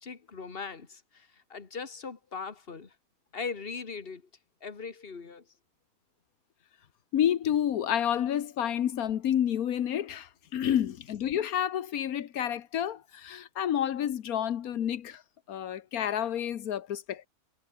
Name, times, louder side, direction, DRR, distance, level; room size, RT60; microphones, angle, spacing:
voice 1, 0.0-2.9 3.3-4.2 4.6-5.4, left 5 dB, 40° left, 2.1 m, -39 dB
voice 2, 7.1-15.2 15.5-17.3, left 10 dB, 85° left, 1.4 m, -29 dB
omnidirectional pair, 1.5 m